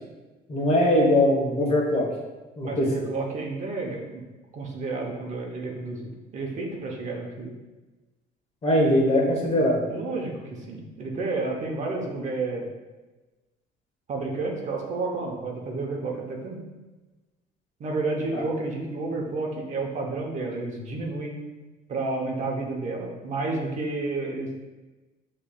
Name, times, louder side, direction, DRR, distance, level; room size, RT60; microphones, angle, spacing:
voice 1, 0.5-2.1 2.6-2.9 8.6-9.8 18.3-18.4, left 1 dB, 35° left, -2 dB, 1.3 m, -21 dB
voice 2, 2.6-4.2 4.5-7.5 9.9-12.7 14.1-16.6 17.8-21.4 21.9-24.5, right 3 dB, 45° right, 0 dB, 0.9 m, -31 dB
6.8 x 3.2 x 2.4 m, 1.2 s
cardioid pair, 110°, 17 cm